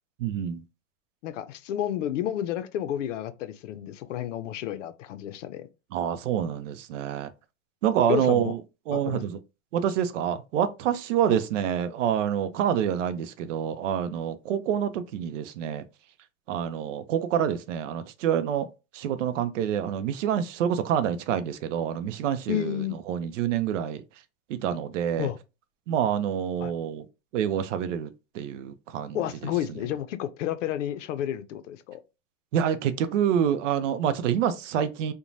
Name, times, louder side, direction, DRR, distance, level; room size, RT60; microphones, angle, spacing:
voice 1, 0.2-0.6 5.9-7.3 7.8-8.6 8.9-9.4 9.7-15.8 16.5-18.7 18.9-24.0 24.5-25.3 25.9-27.1 27.3-29.5 32.5-35.1, right 9 dB, 90° right, 0.5 m, -27 dB
voice 2, 1.2-5.6 8.1-8.5 8.9-9.2 22.5-23.0 25.2-25.4 26.6-26.7 29.1-32.0, left 11 dB, 80° left, 0.5 m, -31 dB
3.0 x 2.1 x 2.6 m
supercardioid pair, 165°, 36 cm